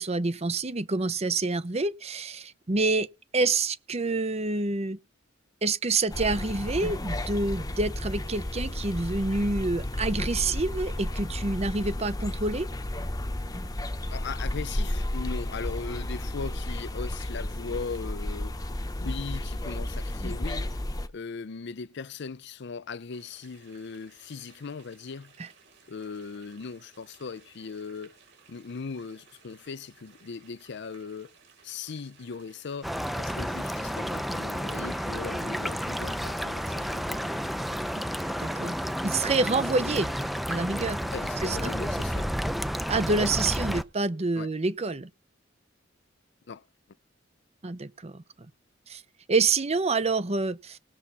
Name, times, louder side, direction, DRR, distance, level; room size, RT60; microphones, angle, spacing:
voice 1, 0.0-3.1 3.3-5.0 5.6-12.7 38.0-38.1 38.4-38.8 39.0-40.1 40.5-41.0 41.4-41.7 42.9-45.1 47.6-48.2 48.9-49.0 49.3-50.8, right 3 dB, 35° right, 0.8 m, -27 dB
sound 1, 6.1-21.1, left 1 dB, 20° left, 1.0 m, -32 dB
voice 2, 14.1-18.6 19.0-20.8 21.1-25.3 25.9-28.2 28.5-31.4 31.6-37.2 41.1-42.3 44.3-44.5 46.5-46.6, left 5 dB, 60° left, 0.5 m, -39 dB
sound 2, 23.1-42.2, right 5 dB, 65° right, 7.1 m, -58 dB
sound 3, 32.8-43.8, equal, ahead, 0.6 m, -31 dB
19.5 x 7.2 x 4.1 m
head